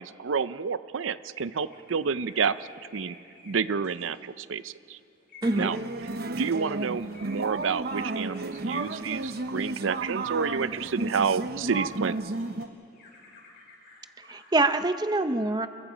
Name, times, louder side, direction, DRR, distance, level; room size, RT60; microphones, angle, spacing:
voice 1, 0.0-2.5 2.9-3.2 3.4-5.0 5.6-5.8 6.3-12.1, right 6 dB, 85° right, 14 dB, 0.6 m, -29 dB
sound 1, 1.3-4.6 5.2-11.5 11.9-14.6, left 3 dB, 55° left, 6.7 m, -54 dB
voice 2, 5.4-5.7 14.3-15.7, right 2 dB, 20° right, 10 dB, 0.7 m, -25 dB
sound 2, 5.4-12.7, right 2 dB, 50° right, 0.8 m, -33 dB
29.5 x 22.0 x 5.1 m, 2.8 s
head